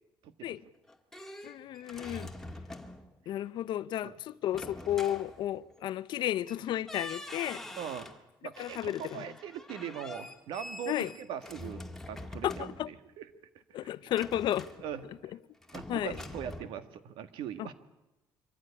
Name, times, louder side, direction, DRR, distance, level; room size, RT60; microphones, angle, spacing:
voice 1, 0.2-0.6 4.0-4.2 7.8-8.1 8.4-11.8 12.1-13.3 13.5-13.6 14.8-15.4 15.7-17.7, right 9 dB, 85° right, 1.9 m, -41 dB
sound 1, 0.7-3.2 4.5-5.8 6.5-6.6 6.9-8.2 8.5-13.1 14.1-15.3 15.6-16.6, left 2 dB, 5° left, 2.0 m, -45 dB
voice 2, 1.4-2.3 3.3-7.6 8.6-9.2 10.9-11.1 12.4-12.9 13.7-14.7 15.9-16.2 17.6-17.7, left 12 dB, 70° left, 0.8 m, -33 dB
24.5 x 15.0 x 10.0 m
cardioid pair, 120°, 8 cm